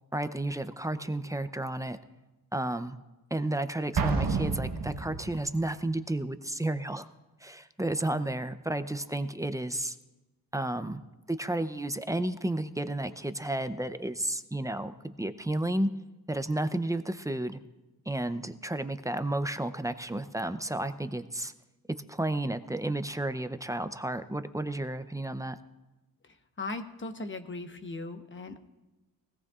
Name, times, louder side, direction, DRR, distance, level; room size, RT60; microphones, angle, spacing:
voice 1, 0.1-2.0 2.5-3.0 3.3-7.1 7.4-10.0 10.5-11.0 11.3-15.9 16.3-17.6 18.1-21.5 22.1-25.6, right 1 dB, 10° right, 10 dB, 0.5 m, -32 dB
Explosion, 4.0-5.6, right 4 dB, 60° right, 1.2 m, -30 dB
voice 2, 26.6-28.6, left 2 dB, 30° left, 7 dB, 1.0 m, -38 dB
20.0 x 17.0 x 2.4 m, 1.1 s
cardioid pair, 100°, 38 cm